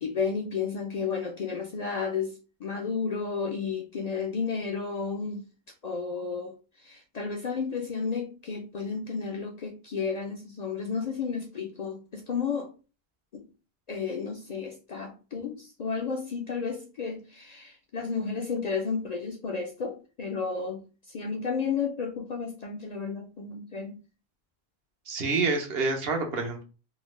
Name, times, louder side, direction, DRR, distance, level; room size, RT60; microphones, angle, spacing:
voice 1, 0.0-5.4 5.8-12.7 13.3-13.4 13.9-20.8 21.1-24.0, left 5 dB, 55° left, 2 dB, 0.5 m, -32 dB
voice 2, 25.1-26.6, right 3 dB, 70° right, 4 dB, 1.0 m, -27 dB
3.8 x 2.1 x 3.1 m, 0.34 s
omnidirectional pair, 1.1 m